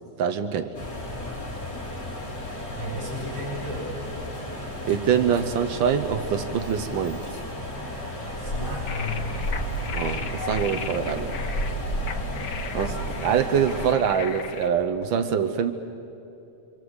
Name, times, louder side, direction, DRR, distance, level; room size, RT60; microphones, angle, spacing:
voice 1, 0.2-0.7 4.9-7.2 9.9-11.4 12.7-15.7, right 8 dB, 80° right, 9 dB, 1.1 m, -24 dB
sound 1, 0.7-13.9, equal, 35° left, 4.5 m, -32 dB
voice 2, 2.8-3.9 8.4-9.5 11.8-12.1, left 2 dB, 35° right, -5 dB, 8.7 m, -34 dB
sound 2, 8.9-14.7, left 6 dB, 65° left, 1.0 m, -38 dB
27.0 x 27.0 x 8.1 m, 2.9 s
omnidirectional pair, 3.4 m